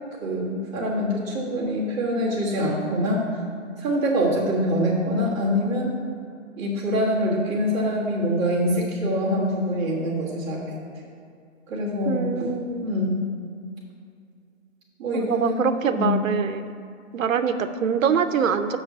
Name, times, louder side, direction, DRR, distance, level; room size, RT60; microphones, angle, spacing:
voice 1, 0.2-3.3 3.8-5.9 6.6-10.8 11.7-12.3 12.8-13.2 15.0-16.2, equal, 20° right, -8 dB, 1.6 m, -24 dB
voice 2, 12.1-13.1 15.1-16.6 17.1-18.8, right 7 dB, 85° right, 9 dB, 0.7 m, -24 dB
6.6 x 5.7 x 6.7 m, 2.4 s
hypercardioid pair, 170°, 39 cm